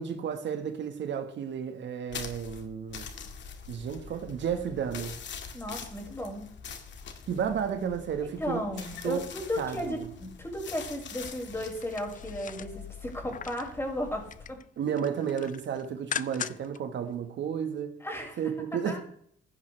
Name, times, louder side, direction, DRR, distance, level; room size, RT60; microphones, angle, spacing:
voice 1, 0.0-3.1 3.7-5.2 7.3-8.6 9.0-9.3 9.6-10.1 14.8-18.0 18.4-19.0, right 7 dB, 65° right, 1.5 m, -32 dB
sound 1, 2.1-14.5, left 6 dB, 65° left, 2.0 m, -44 dB
voice 2, 5.5-6.5 8.4-14.6 18.0-18.4 18.7-19.0, left 1 dB, 10° left, 5.7 m, -35 dB
sound 2, 11.7-13.7 14.1-14.6 14.9-16.8 17.2-17.3, left 8 dB, 40° left, 0.5 m, -39 dB
16.0 x 10.5 x 3.3 m
cardioid pair, 90°, 20 cm